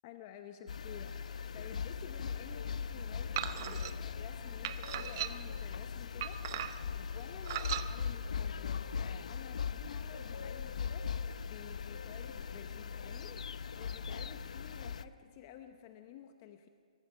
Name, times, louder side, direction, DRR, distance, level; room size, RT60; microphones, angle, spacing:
voice 1, 0.0-16.7, left 9 dB, 25° left, 7 dB, 0.9 m, -52 dB
sound 1, 0.7-15.0, left 6 dB, 65° left, 0.8 m, -40 dB
sound 2, 3.4-3.9 4.6-5.6 6.2-6.9 7.5-7.9, right 11 dB, 30° right, 0.8 m, -37 dB
23.0 x 22.5 x 5.7 m, 2.3 s
hypercardioid pair, 170°, 4 cm